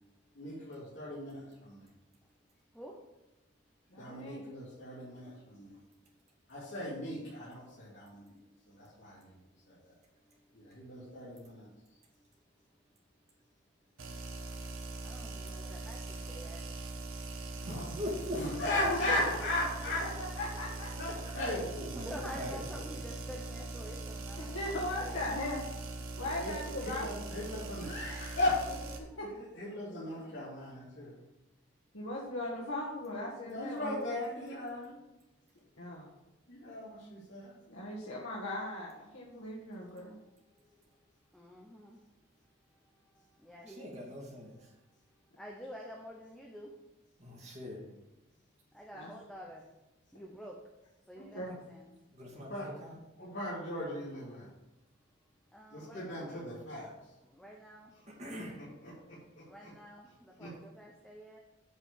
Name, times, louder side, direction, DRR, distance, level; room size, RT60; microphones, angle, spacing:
voice 1, 0.3-1.9 4.0-5.7 6.5-8.3 8.7-9.2 10.5-11.7 18.3-20.1 21.0-22.1 26.3-26.5 26.8-28.8 29.3-31.2 33.4-35.0 36.5-37.5 52.3-52.7 53.2-54.5 55.7-56.9 58.8-58.9 59.6-59.7 60.4-60.5, left 1 dB, 60° left, -9 dB, 3.0 m, -37 dB
voice 2, 3.9-4.4 17.6-18.0 18.9-19.4 20.0-20.9 24.4-25.6 26.2-27.1 27.4-27.5 29.2-29.3 31.9-34.0 35.8-36.1 37.7-40.2 48.9-49.1 51.1-51.5, left 1 dB, 85° left, -5 dB, 1.8 m, -38 dB
sound 1, 14.0-29.0, right 3 dB, 90° right, 1.3 m, -41 dB
voice 3, 15.0-16.6 22.0-25.4 29.1-29.2 41.3-42.0 43.1-44.0 44.7-44.8 45.4-46.7 48.7-49.7 50.1-50.6 51.1-51.9 55.5-56.4 57.2-57.9 59.5-61.4, equal, 5° left, -2 dB, 0.8 m, -49 dB
voice 4, 17.7-18.9 21.8-22.6 43.7-44.5 47.2-47.9 52.1-53.0 58.2-58.6, left 1 dB, 35° right, -3 dB, 2.4 m, -40 dB
8.5 x 4.9 x 7.3 m, 0.97 s
head